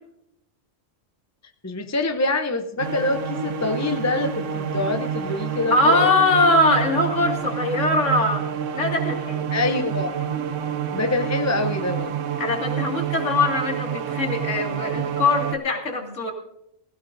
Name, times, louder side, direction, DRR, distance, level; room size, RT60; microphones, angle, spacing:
voice 1, 1.6-6.1 9.5-10.1 10.9-12.1, left 2 dB, 20° left, 5 dB, 0.5 m, -25 dB
sound 1, 2.8-15.6, right 8 dB, 75° right, 1.1 m, -28 dB
voice 2, 5.7-8.5 8.7-9.4 10.3-10.4 12.4-16.3, left 2 dB, 75° left, 1 dB, 2.6 m, -21 dB
20.0 x 16.5 x 2.6 m, 0.80 s
omnidirectional pair, 1.3 m